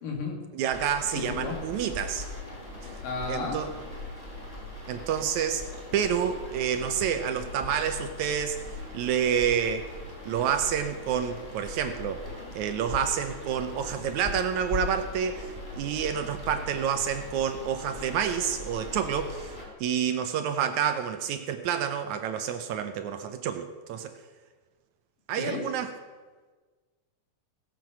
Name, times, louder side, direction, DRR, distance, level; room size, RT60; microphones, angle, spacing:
voice 1, 0.0-0.4 1.2-1.6 3.0-3.6 25.3-25.6, left 4 dB, 70° left, 1 dB, 3.7 m, -33 dB
voice 2, 0.5-2.3 3.3-3.7 4.9-5.6 5.9-8.6 8.9-9.9 10.3-12.2 12.6-19.5 19.8-24.1 25.3-25.9, right 8 dB, 75° right, 8 dB, 1.8 m, -28 dB
sound 1, 0.7-19.7, left 2 dB, 10° left, 3.3 m, -40 dB
17.5 x 7.7 x 5.9 m, 1.4 s
omnidirectional pair, 4.1 m